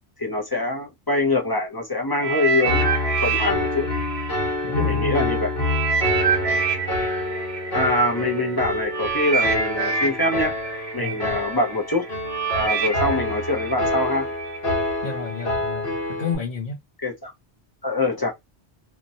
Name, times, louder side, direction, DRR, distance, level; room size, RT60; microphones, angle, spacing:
voice 1, 0.2-2.9 3.2-3.9 4.8-5.5 7.7-10.5 10.9-12.1 12.5-14.3 17.0-17.3 17.8-18.3, left 2 dB, 25° left, 0.5 m, -24 dB
sound 1, 2.2-5.1 5.6-14.6 15.3-15.4, right 6 dB, 35° right, 1.0 m, -27 dB
Piano, 2.6-16.4, left 2 dB, 70° left, 1.3 m, -27 dB
voice 2, 4.6-5.3 11.0-11.4 15.0-16.8, left 5 dB, 55° left, 0.8 m, -31 dB
2.9 x 2.2 x 2.6 m
omnidirectional pair, 1.1 m